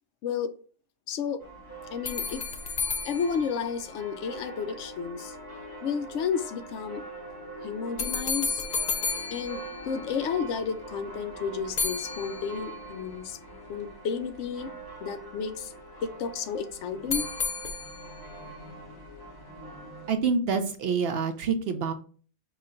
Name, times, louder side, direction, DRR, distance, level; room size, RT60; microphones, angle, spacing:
voice 1, 0.2-0.5 1.1-1.4 1.9-2.4 3.0-5.4 5.8-7.0 7.6-8.6 9.3-13.4 13.7-14.7 15.0-15.7 16.0-17.3, left 6 dB, 75° left, 10 dB, 0.9 m, -32 dB
sound 1, 1.4-20.2, right 2 dB, 20° left, 1.0 m, -43 dB
sound 2, 2.0-4.4 8.0-10.5 11.8-13.0 17.1-18.3, left 4 dB, 60° left, 0.4 m, -33 dB
voice 2, 20.1-21.9, right 5 dB, 60° right, 7 dB, 0.7 m, -27 dB
5.0 x 2.3 x 3.8 m, 0.41 s
omnidirectional pair, 1.3 m